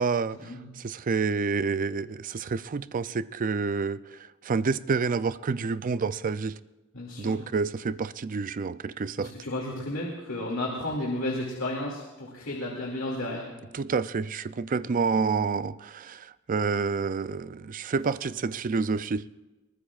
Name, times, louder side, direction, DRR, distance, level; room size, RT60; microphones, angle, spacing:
voice 1, 0.0-6.6 7.2-9.3 13.7-19.3, right 5 dB, 40° right, 15 dB, 0.4 m, -28 dB
voice 2, 6.9-7.4 9.2-13.5, left 1 dB, 70° left, -2 dB, 2.4 m, -32 dB
22.5 x 19.5 x 2.4 m, 1.1 s
head